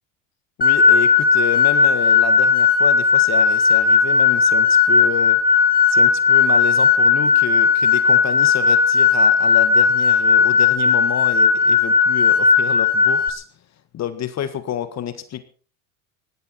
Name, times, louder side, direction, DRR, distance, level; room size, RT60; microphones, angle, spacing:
voice 1, 0.6-5.4 5.9-13.4 13.9-15.4, left 10 dB, 40° left, 11 dB, 1.7 m, -29 dB
sound 1, 0.6-13.3, left 5 dB, 20° left, 2.2 m, -16 dB
18.5 x 15.0 x 4.3 m, 0.39 s
hypercardioid pair, 90°, 40 cm